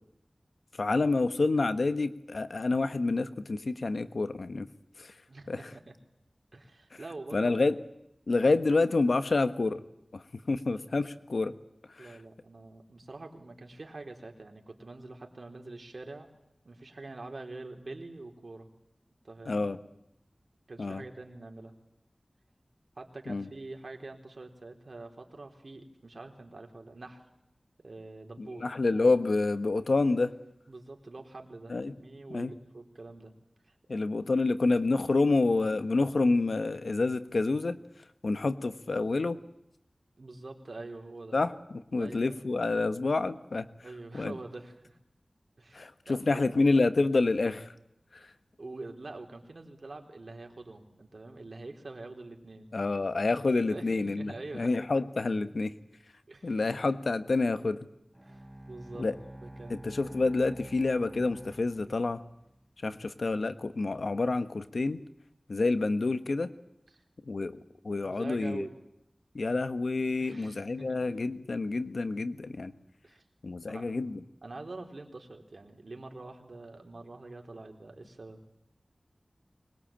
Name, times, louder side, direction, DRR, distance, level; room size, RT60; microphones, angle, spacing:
voice 1, 0.8-4.7 5.0-5.1 5.5-5.7 7.3-7.8 8.3-9.8 10.1-11.5 12.0-12.2 19.5-19.8 20.8-21.0 23.3-23.5 28.4-30.3 31.7-31.9 32.3-32.5 33.9-37.8 38.2-39.4 41.3-43.7 44.1-44.3 45.7-47.7 48.1-48.3 52.7-55.7 56.4-57.8 59.0-59.1 59.7-62.2 62.8-65.0 65.5-66.5 67.2-67.6 67.8-68.6 69.3-72.7 73.4-74.2, left 3 dB, 85° left, 10 dB, 1.4 m, -28 dB
voice 2, 5.3-5.9 6.5-7.5 12.0-16.3 16.6-18.7 19.2-19.7 20.7-21.7 23.0-27.2 27.8-28.7 30.7-33.3 33.7-33.8 40.2-41.4 42.0-42.4 43.8-45.0 45.6-46.4 48.6-52.8 53.7-54.9 56.3-56.6 58.2-59.1 59.4-60.2 66.9-67.0 68.0-68.7 70.2-71.0 73.0-73.2 73.7-73.9 74.4-78.4, right 2 dB, 70° right, 3 dB, 4.0 m, -45 dB
Bowed string instrument, 58.1-62.6, right 1 dB, 10° right, 3.1 m, -48 dB
24.5 x 21.5 x 8.9 m, 0.83 s
wide cardioid pair, 45°, 0 cm